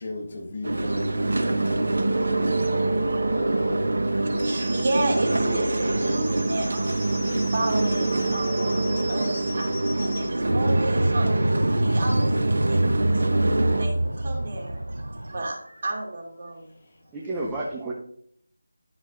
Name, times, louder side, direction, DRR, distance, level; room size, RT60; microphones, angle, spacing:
voice 1, 0.0-2.0 3.2-4.2 11.7-12.0 16.7-17.0 17.3-17.6, left 2 dB, 35° left, 1 dB, 1.5 m, -38 dB
sound 1, 0.6-13.9, right 2 dB, 65° right, 1.1 m, -25 dB
sound 2, 4.4-10.3, equal, 20° left, 3.6 m, -39 dB
voice 2, 4.4-13.4 13.8-16.7, right 2 dB, 40° right, -1 dB, 2.6 m, -32 dB
voice 3, 5.4-5.7 17.1-17.9, right 2 dB, 10° right, -3 dB, 0.9 m, -31 dB
sound 3, 10.5-15.5, right 1 dB, 85° right, 0.4 m, -25 dB
11.0 x 7.2 x 2.5 m, 0.65 s
figure-of-eight pair, 160°, 0 cm